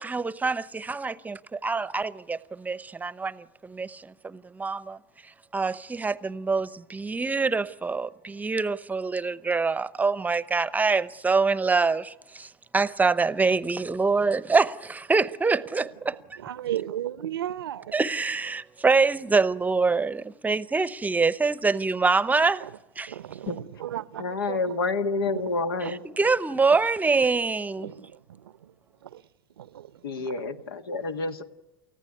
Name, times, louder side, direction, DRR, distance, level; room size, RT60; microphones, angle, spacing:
voice 1, 0.0-5.0 5.5-16.2 17.9-22.7 23.0-23.2 26.2-27.9, right 4 dB, 15° right, 0.8 m, -25 dB
voice 2, 16.4-17.9 23.1-24.6 25.8-25.9 27.8-28.0 29.6-29.9 30.2-30.3, right 11 dB, 80° right, 0.8 m, -33 dB
voice 3, 24.2-26.0 30.0-31.4, left 3 dB, 80° left, 1.6 m, -28 dB
29.5 x 14.5 x 9.6 m
hypercardioid pair, 95°, 12 cm